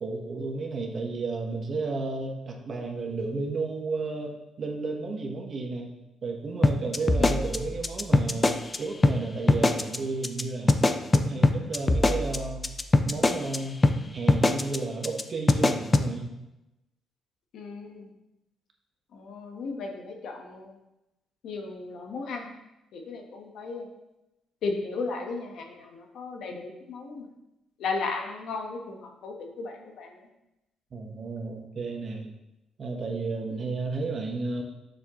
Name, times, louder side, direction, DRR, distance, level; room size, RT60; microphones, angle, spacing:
voice 1, 0.0-5.9 6.2-10.8 11.1-12.7 13.1-13.8 14.1-16.3 30.9-32.3 32.8-34.6, right 3 dB, 50° right, 2 dB, 1.2 m, -33 dB
sound 1, 6.6-8.8 9.0-9.2 9.5-10.0 10.2-10.4 10.7-13.6 13.8-14.0 14.3-14.8 15.0-15.2 15.5-16.1, left 2 dB, 25° left, 0.5 m, -21 dB
voice 2, 17.5-18.1 19.1-20.7 21.4-22.5 22.9-23.9 24.6-27.3 27.8-30.3 33.5-33.6, left 4 dB, 75° left, 2 dB, 1.2 m, -35 dB
6.7 x 6.4 x 3.0 m, 0.92 s
cardioid pair, 90°, 0 cm